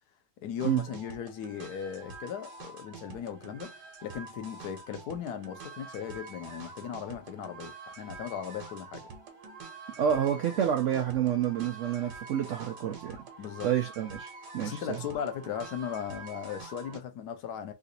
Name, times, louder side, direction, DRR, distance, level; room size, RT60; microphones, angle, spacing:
voice 1, 0.4-3.7 4.0-9.1 13.4-13.7 14.6-17.7, left 8 dB, 70° left, 1.2 m, -37 dB
sound 1, 0.6-17.0, right 4 dB, 70° right, 1.4 m, -46 dB
voice 2, 10.0-13.2 13.6-15.0, right 9 dB, 90° right, 0.6 m, -29 dB
3.8 x 2.5 x 2.6 m
omnidirectional pair, 1.9 m